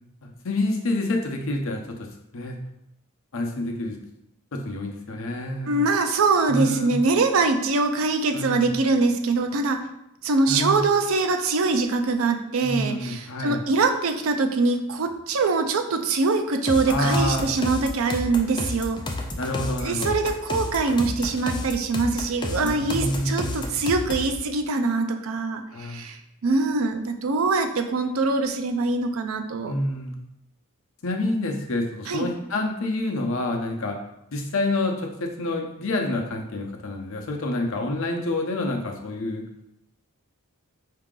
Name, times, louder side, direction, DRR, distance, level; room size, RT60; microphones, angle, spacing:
voice 1, 0.2-1.8 2.3-2.6 3.3-4.0 4.5-5.8 6.5-7.0 8.3-8.7 10.5-10.8 12.6-13.6 16.9-17.5 19.4-20.1 22.6-23.6 25.7-26.0 29.7-30.1 31.0-34.0 34.3-39.4, left 2 dB, 65° left, 2 dB, 0.7 m, -27 dB
voice 2, 5.7-9.8 10.2-19.0 19.8-29.7 32.1-32.3, right 3 dB, 70° right, 6 dB, 0.5 m, -23 dB
sound 1, 16.7-24.3, left 2 dB, 20° left, 0.5 m, -31 dB
4.7 x 2.8 x 3.7 m, 0.83 s
head